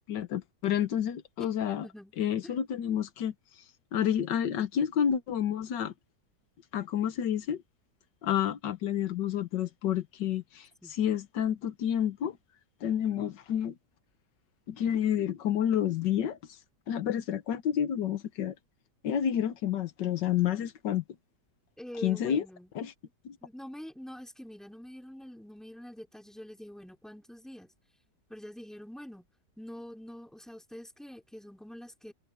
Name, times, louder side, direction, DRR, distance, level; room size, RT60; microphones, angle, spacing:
voice 1, 0.1-1.9 2.2-3.3 3.9-5.9 6.7-7.6 8.2-12.4 12.8-13.7 14.7-16.4 16.9-18.5 19.0-21.0 22.0-22.5 22.7-22.9 23.2-23.4, left 9 dB, 85° left, 1.7 m, -29 dB
voice 2, 1.8-2.1 2.4-2.5 10.8-10.9 21.8-22.7 23.4-27.7 28.3-29.3 29.6-32.1, equal, ahead, 3.5 m, -45 dB
omnidirectional pair, 1.9 m